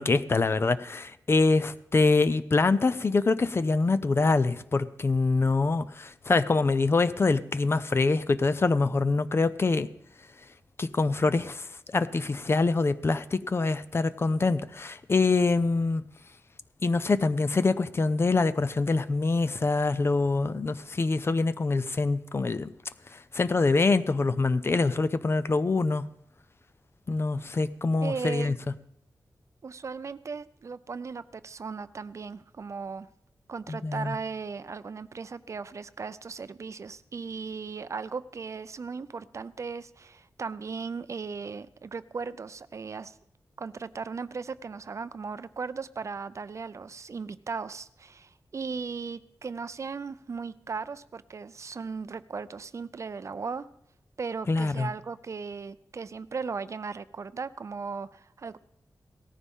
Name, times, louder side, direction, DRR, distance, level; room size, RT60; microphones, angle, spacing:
voice 1, 0.0-9.9 10.8-16.1 16.8-22.7 23.1-26.1 27.1-28.6 33.7-34.2 54.5-54.9, left 3 dB, 40° left, 0.5 m, -25 dB
voice 2, 28.0-28.5 29.6-33.1 33.5-43.1 43.6-53.7 54.2-58.6, right 5 dB, 50° right, 0.5 m, -37 dB
17.5 x 14.0 x 3.6 m
wide cardioid pair, 135°, 7 cm